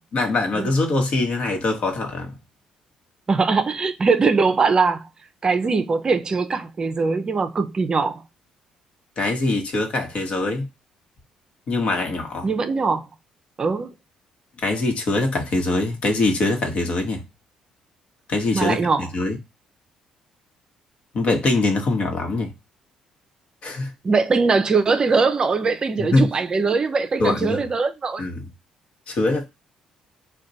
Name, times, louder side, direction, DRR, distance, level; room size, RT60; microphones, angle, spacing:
voice 1, 0.1-2.3 9.2-10.7 11.7-12.5 14.6-17.2 18.3-18.8 19.1-19.4 21.1-22.5 23.6-23.9 26.0-26.3 27.2-27.7 28.2-28.4 29.1-29.4, left 2 dB, 55° left, 1.0 m, -23 dB
voice 2, 3.3-5.0 5.4-8.2 12.4-13.1 13.6-13.9 18.5-19.1 24.0-28.2, right 4 dB, 35° right, 0.5 m, -21 dB
2.4 x 2.2 x 4.0 m
supercardioid pair, 70°, 2 cm